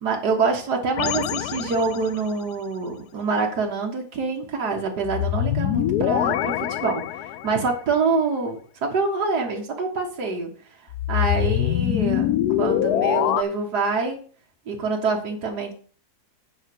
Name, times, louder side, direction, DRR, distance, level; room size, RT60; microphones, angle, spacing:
voice 1, 0.0-10.5 11.1-14.2 14.7-15.7, right 4 dB, 85° right, 1 dB, 2.2 m, -26 dB
sound 1, 1.0-2.3 5.0-7.7 10.9-13.4, left 13 dB, 80° left, 1.1 m, -24 dB
9.1 x 4.7 x 7.7 m, 0.43 s
omnidirectional pair, 1.7 m